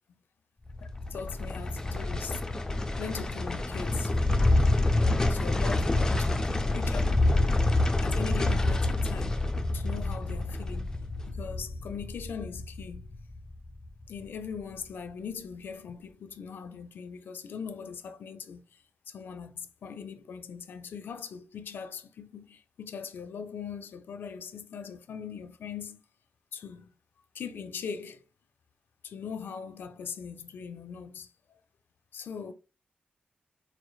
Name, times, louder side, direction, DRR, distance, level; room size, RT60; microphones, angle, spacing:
sound 1, 0.7-13.9 14.2-14.3, left 2 dB, 15° left, 0.4 m, -27 dB
voice 1, 1.1-2.4 3.0-4.1 5.1-7.0 7.3-7.7 8.0-9.4 9.7-11.0 11.3-13.1 14.1-18.6 19.1-26.0 26.5-26.9 27.3-28.2 29.0-31.3 32.1-32.5, left 6 dB, 80° left, 0.4 m, -40 dB
4.2 x 3.1 x 2.3 m
wide cardioid pair, 115°, 3 cm